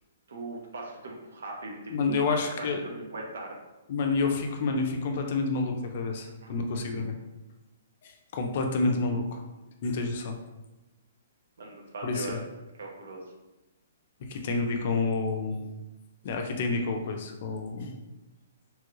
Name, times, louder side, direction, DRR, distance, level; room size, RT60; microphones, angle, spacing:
voice 1, 0.3-3.6 6.2-6.6 11.6-12.3 12.8-13.2, right 2 dB, 75° right, 0 dB, 0.8 m, -40 dB
voice 2, 1.9-2.8 3.9-7.2 8.0-9.4 9.8-10.4 12.0-12.4 14.3-15.7 16.2-17.9, left 3 dB, 50° left, 4 dB, 0.5 m, -29 dB
3.0 x 2.4 x 3.0 m, 1.0 s
hypercardioid pair, 150°, 0 cm